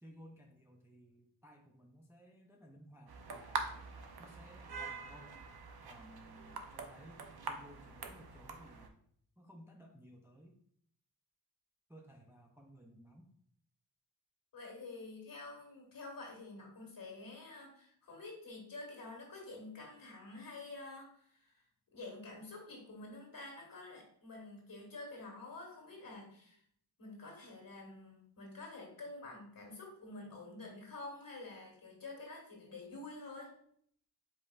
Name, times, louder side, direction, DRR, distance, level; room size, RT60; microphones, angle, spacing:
voice 1, 0.0-3.8 4.2-5.3 5.8-9.0 9.4-10.6 11.9-13.4, equal, 5° right, 1 dB, 0.4 m, -58 dB
sound 1, 3.1-8.9, right 4 dB, 60° right, 0.6 m, -44 dB
voice 2, 14.5-21.6 21.9-26.6 27.0-33.6, left 2 dB, 50° left, 0 dB, 1.7 m, -49 dB
5.3 x 4.3 x 2.3 m, 0.64 s
wide cardioid pair, 145°, 42 cm